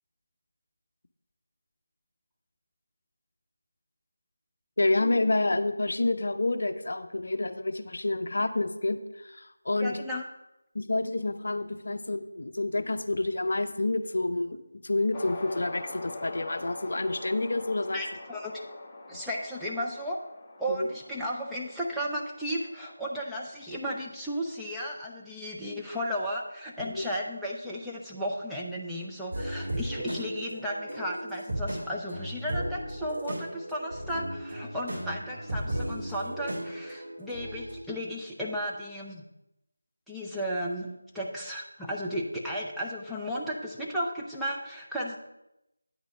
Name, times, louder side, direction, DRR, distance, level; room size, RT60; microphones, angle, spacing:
voice 1, 4.8-10.0 10.7-18.0 20.7-20.9 26.8-27.1, left 2 dB, 60° left, 9 dB, 0.6 m, -29 dB
voice 2, 9.8-10.2 17.9-18.6 19.1-20.2 20.6-39.2 40.1-45.2, equal, ahead, -7 dB, 0.6 m, -34 dB
sound 1, 15.1-23.7, left 2 dB, 20° left, 0.9 m, -44 dB
sound 2, 29.3-37.8, right 1 dB, 60° right, 2.5 m, -36 dB
9.4 x 4.1 x 6.4 m, 0.88 s
figure-of-eight pair, 165°, 0 cm